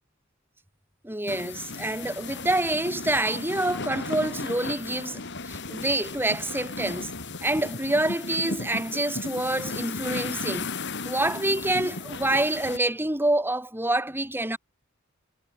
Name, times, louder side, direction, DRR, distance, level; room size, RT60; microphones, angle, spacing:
voice 1, 1.0-7.1 7.4-10.7 11.0-14.6, right 1 dB, 10° right, 3.2 m, -27 dB
sound 1, 1.3-12.8, left 3 dB, 60° left, 3.8 m, -35 dB
head